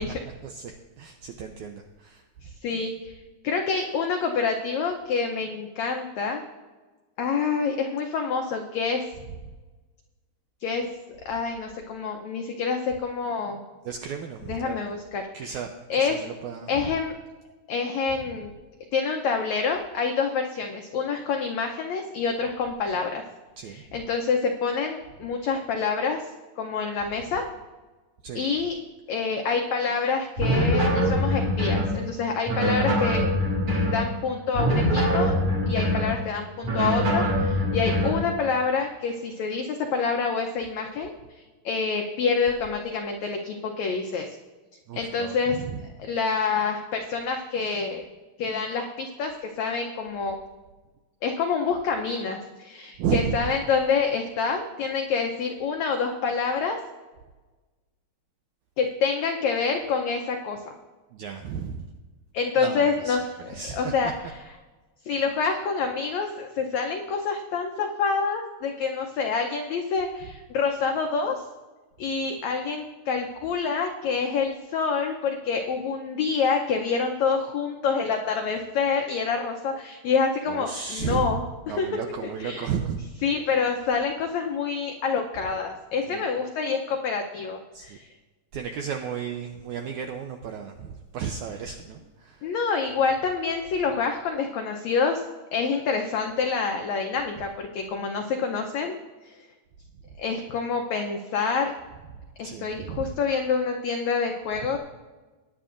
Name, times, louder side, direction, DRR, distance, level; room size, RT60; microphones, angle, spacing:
voice 1, 0.0-2.2 13.9-14.8 15.3-15.7 16.0-16.9 23.6-23.8 28.2-28.5 44.9-45.8 53.0-53.4 61.1-61.9 62.6-63.2 63.5-63.9 80.5-81.4 81.7-83.0 86.1-86.2 87.7-88.0 88.5-92.5 102.4-103.1, right 7 dB, 85° right, 4 dB, 1.7 m, -33 dB
voice 2, 2.4-3.1 3.4-6.4 7.2-9.1 10.6-13.6 14.5-15.6 15.9-16.2 16.7-17.1 17.7-18.5 18.9-23.2 23.6-26.3 26.6-27.5 28.3-28.8 29.1-33.3 33.9-35.4 35.7-44.4 44.9-48.0 48.4-50.4 51.2-56.8 58.8-60.7 62.3-64.4 65.0-71.4 72.0-82.7 83.2-88.1 92.4-95.2 95.5-99.0 99.2-99.4 100.2-101.7 102.4-104.8, left 5 dB, 85° left, 3 dB, 1.6 m, -27 dB
sound 1, 30.4-31.9 32.5-34.0 34.5-36.1 36.6-38.2, equal, 45° right, 3.0 m, -23 dB
19.5 x 10.0 x 2.5 m, 1.2 s
omnidirectional pair, 4.2 m